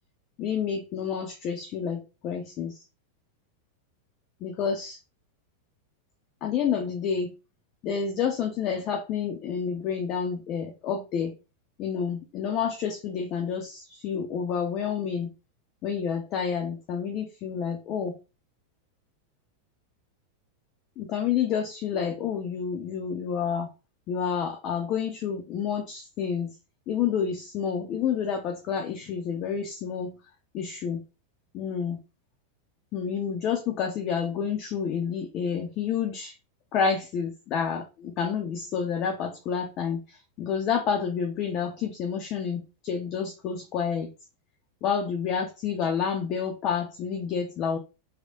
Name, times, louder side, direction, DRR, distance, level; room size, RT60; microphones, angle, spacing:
voice 1, 0.4-2.7 4.4-5.0 6.4-7.3 7.8-11.3 11.8-15.3 15.8-18.2 21.0-23.7 24.1-26.5 26.9-30.1 30.5-31.0 31.5-32.0 32.9-36.3 36.7-44.1 44.8-47.8, left 7 dB, 35° left, 0.5 m, -29 dB
2.9 x 2.8 x 2.3 m
figure-of-eight pair, 90°, 0 cm